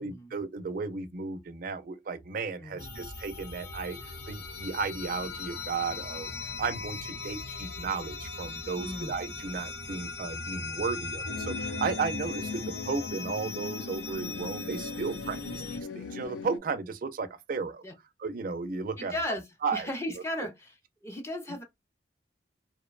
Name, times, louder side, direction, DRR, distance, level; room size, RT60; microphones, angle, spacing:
voice 1, 0.0-6.3 6.6-17.8 18.2-19.1 19.6-19.9 20.4-20.5, right 4 dB, 50° right, 0.4 m, -34 dB
voice 2, 2.6-3.0 8.8-9.1 17.8-17.9 19.0-19.4 19.7-20.7 21.0-21.6, left 1 dB, 15° left, 0.4 m, -35 dB
sound 1, 2.8-15.8, left 3 dB, 70° left, 0.7 m, -39 dB
sound 2, 11.3-16.6, left 5 dB, 90° left, 0.3 m, -39 dB
2.5 x 2.1 x 2.3 m
head